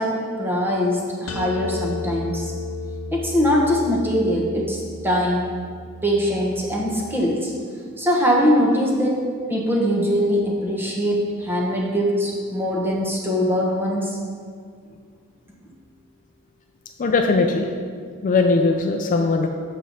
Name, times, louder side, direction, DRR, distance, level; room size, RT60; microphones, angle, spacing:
voice 1, 0.0-2.5 3.1-5.6 6.0-7.5 8.0-9.2 9.5-14.2, equal, 10° right, -2 dB, 1.1 m, -22 dB
sound 1, 1.3-7.1, left 3 dB, 80° left, 0.8 m, -34 dB
voice 2, 17.0-17.7 18.2-19.5, left 3 dB, 35° left, 3 dB, 0.4 m, -19 dB
7.5 x 6.2 x 4.1 m, 2.1 s
head